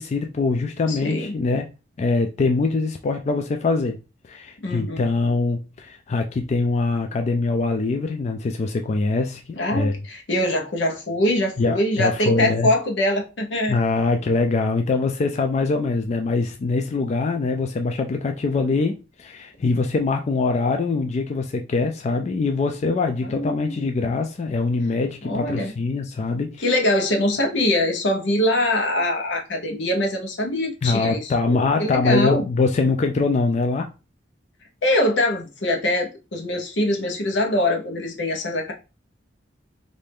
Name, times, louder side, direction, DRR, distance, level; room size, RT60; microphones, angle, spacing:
voice 1, 0.0-1.7 2.0-9.4 9.7-10.0 11.6-12.7 13.7-26.6 30.8-33.9, left 3 dB, 40° left, 0.3 m, -23 dB
voice 2, 0.9-1.4 4.6-5.1 9.6-13.8 23.2-23.8 25.2-25.7 26.6-32.4 34.8-38.7, left 1 dB, 80° left, 0.9 m, -23 dB
3.2 x 2.6 x 3.4 m
head